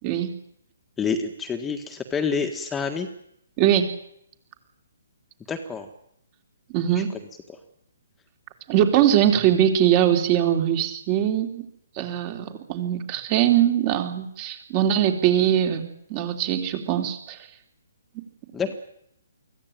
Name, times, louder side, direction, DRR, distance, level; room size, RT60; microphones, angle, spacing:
voice 1, 0.0-0.3 3.6-3.9 6.7-7.1 8.7-11.6 12.0-17.4 18.1-18.2, right 10 dB, 30° right, 6 dB, 3.4 m, -22 dB
voice 2, 1.0-3.1 5.5-5.9 7.0-7.1 18.5-18.7, left 5 dB, 10° left, 6 dB, 1.8 m, -27 dB
24.0 x 16.0 x 9.1 m, 0.75 s
figure-of-eight pair, 135°, 0 cm